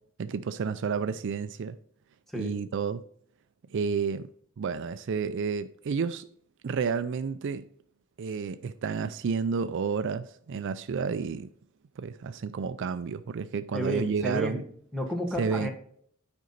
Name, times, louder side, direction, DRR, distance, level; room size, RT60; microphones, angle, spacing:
voice 1, 0.2-1.8 2.4-3.0 3.7-4.3 4.6-6.3 6.6-7.6 8.2-11.5 12.0-14.6 15.4-15.7, right 5 dB, 60° right, 0.4 m, -30 dB
voice 2, 13.7-14.6 14.9-15.7, equal, ahead, 1.3 m, -31 dB
9.2 x 5.2 x 4.0 m
head